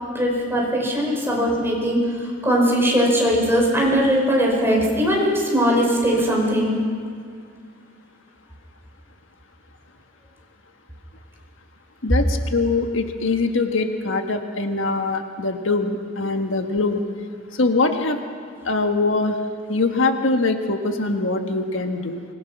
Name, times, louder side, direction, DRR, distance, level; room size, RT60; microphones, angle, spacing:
voice 1, 0.1-6.8, equal, 10° right, -2 dB, 5.0 m, -20 dB
voice 2, 12.0-17.0 17.6-18.2 18.6-19.4 19.7-22.2, left 3 dB, 85° left, 5 dB, 1.5 m, -22 dB
25.0 x 21.0 x 6.0 m, 2.1 s
head